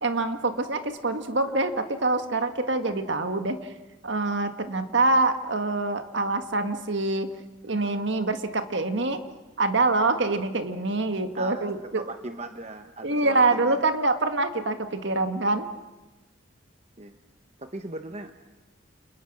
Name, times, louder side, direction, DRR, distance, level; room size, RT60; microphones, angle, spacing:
voice 1, 0.0-3.6 4.0-7.3 7.6-9.2 9.6-12.0 13.0-15.7, right 2 dB, 65° right, 8 dB, 1.8 m, -25 dB
voice 2, 11.4-11.7 11.9-13.8 17.0-17.2 17.6-18.4, right 2 dB, 35° right, 7 dB, 1.0 m, -38 dB
30.0 x 29.5 x 6.4 m, 1.2 s
head